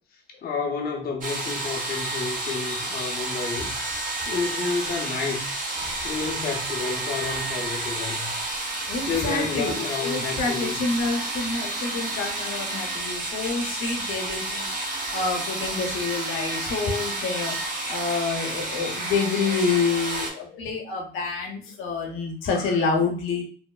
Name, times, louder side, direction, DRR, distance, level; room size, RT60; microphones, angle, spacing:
voice 1, 0.4-3.7 4.3-5.6 6.0-8.3 9.0-10.8, left 4 dB, 50° left, 0 dB, 0.6 m, -30 dB
sound 1, 1.2-20.3, right 2 dB, 45° right, 0.9 m, -30 dB
voice 2, 8.9-14.7 15.1-17.6 17.9-23.4, left 4 dB, 85° left, 0 dB, 0.7 m, -27 dB
3.0 x 2.0 x 2.2 m, 0.43 s
cardioid pair, 90°, 20 cm